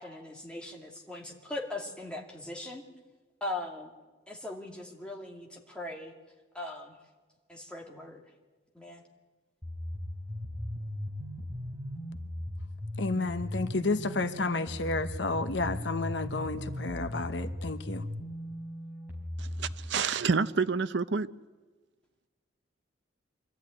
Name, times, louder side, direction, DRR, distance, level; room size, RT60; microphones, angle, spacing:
voice 1, 0.0-2.8 3.4-3.9 4.3-6.1 6.5-7.0 7.5-8.2 8.7-9.0, left 2 dB, 5° left, -1 dB, 2.5 m, -40 dB
sound 1, 9.6-19.7, left 1 dB, 10° right, 4.3 m, -38 dB
voice 2, 13.0-18.0, left 3 dB, 70° left, 10 dB, 1.0 m, -31 dB
voice 3, 19.4-21.3, right 5 dB, 70° right, 14 dB, 0.7 m, -28 dB
25.5 x 13.5 x 9.7 m, 1.3 s
head